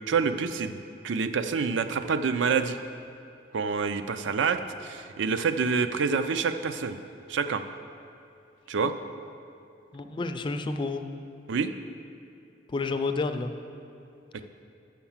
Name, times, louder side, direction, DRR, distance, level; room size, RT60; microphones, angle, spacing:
voice 1, 0.1-0.8 1.0-2.8 3.5-7.0 7.3-7.6 8.7-8.9 11.5-11.7, right 5 dB, 85° right, 10 dB, 0.4 m, -27 dB
voice 2, 9.9-11.0 12.7-13.5, left 3 dB, 25° left, 8 dB, 0.4 m, -30 dB
7.2 x 5.8 x 7.2 m, 2.6 s
head